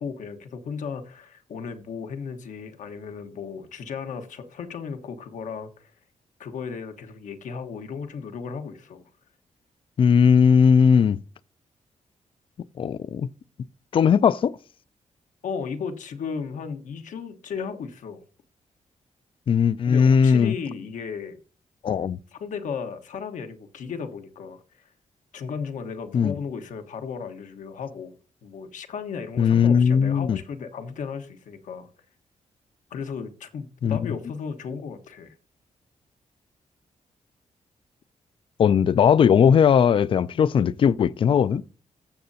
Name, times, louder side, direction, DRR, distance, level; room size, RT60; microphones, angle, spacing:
voice 1, 0.0-5.9 6.4-9.1 15.4-18.2 19.9-21.4 22.3-24.9 25.3-28.1 28.4-31.9 32.9-35.3, left 6 dB, 85° left, 1.2 m, -35 dB
voice 2, 10.0-11.2 12.8-13.3 13.9-14.5 19.5-20.5 21.8-22.2 26.1-26.3 29.4-30.4 33.8-34.0 38.6-41.6, left 7 dB, 45° left, 0.3 m, -18 dB
14.5 x 6.5 x 2.8 m
wide cardioid pair, 125°, 13 cm